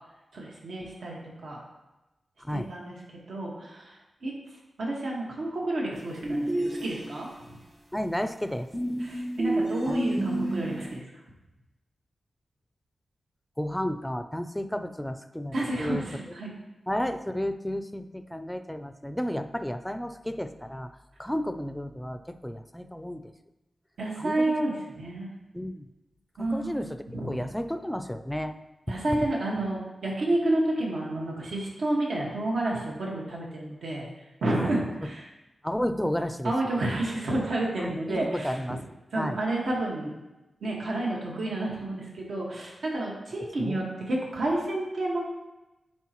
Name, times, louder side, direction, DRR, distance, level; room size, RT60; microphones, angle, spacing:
voice 1, 0.3-1.6 2.5-2.9 3.3-3.9 4.2-4.3 4.8-7.3 9.0-11.0 15.5-16.5 24.0-25.3 26.4-26.9 27.1-27.3 28.9-34.1 34.4-35.2 36.4-38.5 39.1-40.1 40.6-45.2, right 1 dB, 85° right, -3 dB, 1.6 m, -30 dB
voice 2, 2.4-2.7 7.9-8.7 9.9-10.0 13.6-16.1 16.9-20.9 21.2-23.3 24.2-24.6 25.5-25.9 26.4-28.6 28.9-29.0 35.6-36.9 37.8-38.8 39.2-39.4 43.6-43.8, equal, 5° left, 9 dB, 0.4 m, -32 dB
sound 1, 6.2-7.5 8.7-10.9, right 1 dB, 35° right, 1.3 m, -30 dB
9.4 x 4.5 x 3.0 m, 1.0 s
wide cardioid pair, 110°, 0 cm